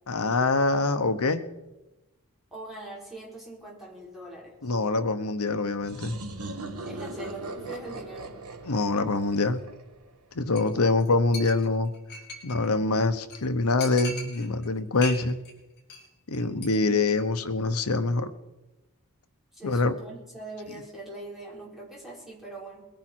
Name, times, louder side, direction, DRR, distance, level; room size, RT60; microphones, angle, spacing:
voice 1, 0.1-1.4 4.6-6.2 8.6-9.6 10.3-11.9 12.4-15.4 16.3-18.3 19.6-19.9, left 3 dB, 75° left, 9 dB, 1.0 m, -25 dB
voice 2, 2.5-4.5 6.8-8.4 10.7-10.9 16.7-17.2 19.5-22.8, right 2 dB, ahead, -4 dB, 4.5 m, -42 dB
sound 1, 5.8-10.4, right 2 dB, 75° right, 1.5 m, -39 dB
Chink clink, 10.6-10.7 11.0-11.1 11.3-12.7 13.0-13.1 13.3-13.4 13.8-14.7 15.0-15.5 15.8-16.1 16.3-16.7 17.0-17.1, left 2 dB, 50° left, 4.9 m, -38 dB
22.0 x 10.5 x 4.5 m, 1.0 s
head